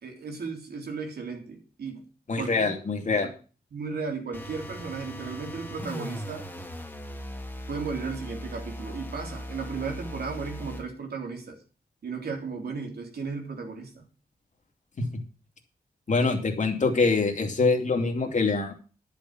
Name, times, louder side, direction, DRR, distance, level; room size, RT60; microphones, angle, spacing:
voice 1, 0.0-2.0 2.3-2.7 3.2-3.3 3.7-6.5 7.7-11.6 12.0-14.1, right 5 dB, 85° right, 3 dB, 3.4 m, -35 dB
voice 2, 2.3-3.3 16.1-18.7, left 4 dB, 50° left, 4 dB, 2.7 m, -24 dB
sound 1, 4.3-10.9, equal, 10° left, 1.9 m, -39 dB
11.0 x 7.0 x 7.3 m, 0.36 s
wide cardioid pair, 120°, 16 cm